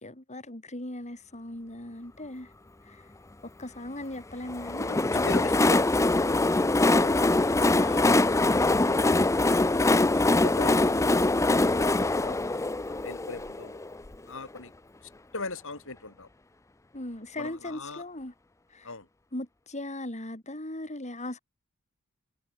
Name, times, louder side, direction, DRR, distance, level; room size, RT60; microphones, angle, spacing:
voice 1, 0.0-2.5 2.8-3.1 3.4-5.1 9.8-10.1 16.9-18.3 18.7-18.9 19.3-21.4, left 1 dB, 30° left, 3.9 m, -38 dB
Train, 4.5-14.1, left 2 dB, 15° left, 0.5 m, -23 dB
voice 2, 4.9-6.7 7.0-7.3 10.1-11.3 11.6-13.8 14.3-14.7 15.0-16.3 17.3-18.0 18.8-19.1, left 3 dB, 60° left, 7.0 m, -41 dB
head